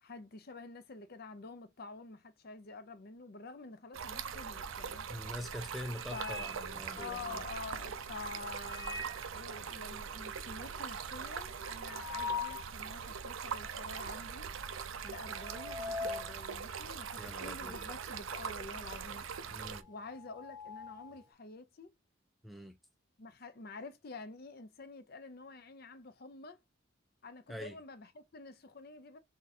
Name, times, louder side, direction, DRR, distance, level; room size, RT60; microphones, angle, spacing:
voice 1, 0.0-5.1 6.1-6.5 7.0-14.5 15.0-19.3 19.9-21.9 23.2-26.6 27.2-29.2, left 3 dB, 50° left, 0.6 m, -48 dB
Stream, 3.9-19.8, right 6 dB, 75° right, 0.5 m, -42 dB
sound 1, 4.6-5.0 5.4-7.5 8.4-9.4 9.8-9.9 10.1-10.2 10.6-12.7 13.2-13.3 14.1-14.4 14.7-18.0 18.3-21.2, left 4 dB, 20° right, 0.9 m, -44 dB
voice 2, 5.1-7.4 17.2-17.7 19.5-19.9 22.4-22.8 27.5-27.8, equal, ahead, 0.3 m, -44 dB
3.8 x 2.7 x 4.1 m
head